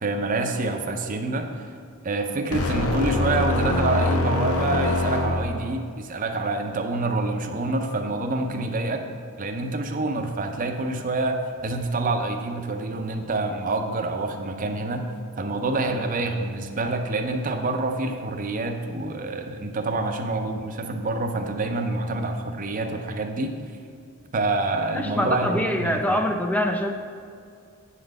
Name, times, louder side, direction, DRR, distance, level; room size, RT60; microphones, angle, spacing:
voice 1, 0.0-1.7 2.0-9.0 9.4-15.1 15.4-23.5 24.3-26.2, right 2 dB, 40° right, 5 dB, 0.6 m, -27 dB
sound 1, 2.5-5.8, left 2 dB, 85° left, 0.8 m, -24 dB
voice 2, 24.9-26.9, equal, 5° left, 5 dB, 0.4 m, -24 dB
8.0 x 4.0 x 6.4 m, 2.3 s
head